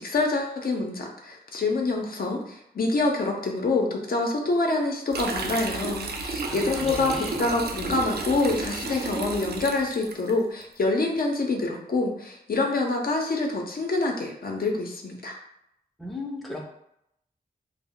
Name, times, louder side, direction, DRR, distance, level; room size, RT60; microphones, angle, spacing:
voice 1, 0.0-15.4, left 2 dB, 65° left, 1 dB, 0.5 m, -26 dB
sound 1, 5.1-10.3, right 3 dB, 75° right, 0.4 m, -32 dB
voice 2, 6.4-7.4 16.0-16.7, left 1 dB, ahead, -1 dB, 0.5 m, -36 dB
2.1 x 2.0 x 3.6 m, 0.78 s
wide cardioid pair, 80°, 16 cm